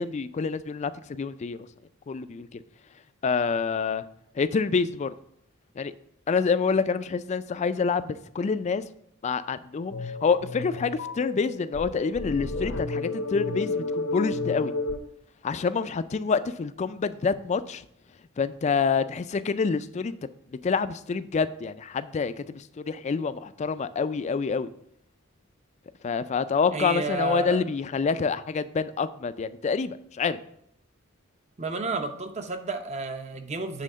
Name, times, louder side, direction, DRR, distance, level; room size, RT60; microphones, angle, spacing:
voice 1, 0.0-1.7 2.1-2.6 3.2-4.0 4.4-5.1 5.8-5.9 6.3-8.8 9.2-14.7 15.4-17.8 18.4-20.2 20.6-24.7 26.0-30.4, left 5 dB, 35° left, 14 dB, 0.3 m, -27 dB
sound 1, 9.9-15.0, left 3 dB, 65° left, 0.7 m, -31 dB
voice 2, 26.7-27.6 31.6-33.8, right 3 dB, 35° right, 7 dB, 0.6 m, -31 dB
7.6 x 3.7 x 6.1 m, 0.71 s
head